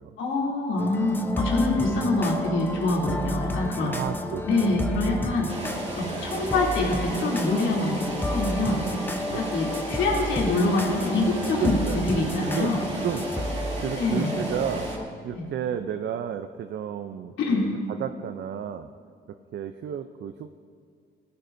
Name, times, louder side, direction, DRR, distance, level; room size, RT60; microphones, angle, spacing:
voice 1, 0.2-3.9 4.5-5.5 6.0-8.8 9.3-12.8 13.9-14.4 15.3-15.5 17.4-17.7, left 2 dB, 80° left, -3 dB, 3.0 m, -25 dB
sound 1, 0.8-15.1, left 1 dB, 10° left, 0.8 m, -32 dB
voice 2, 3.8-4.9 6.0-6.3 9.3-9.4 11.5-12.0 12.5-14.9 15.2-18.9 19.3-20.5, right 9 dB, 60° right, 9 dB, 0.5 m, -33 dB
sound 2, 5.5-15.0, right 2 dB, 35° right, 2.6 m, -35 dB
17.0 x 14.0 x 2.7 m, 2.1 s
cardioid pair, 90°, 20 cm